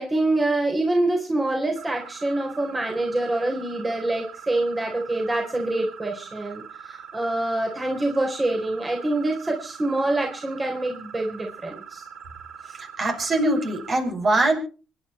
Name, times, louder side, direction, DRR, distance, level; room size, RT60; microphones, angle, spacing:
voice 1, 0.0-12.0, right 2 dB, 25° right, 2 dB, 4.0 m, -25 dB
sound 1, 1.8-13.9, right 7 dB, 75° right, 4.1 m, -42 dB
voice 2, 12.8-14.5, right 2 dB, 50° right, 3 dB, 7.1 m, -22 dB
25.5 x 10.5 x 4.4 m, 0.37 s
supercardioid pair, 60°, 0 cm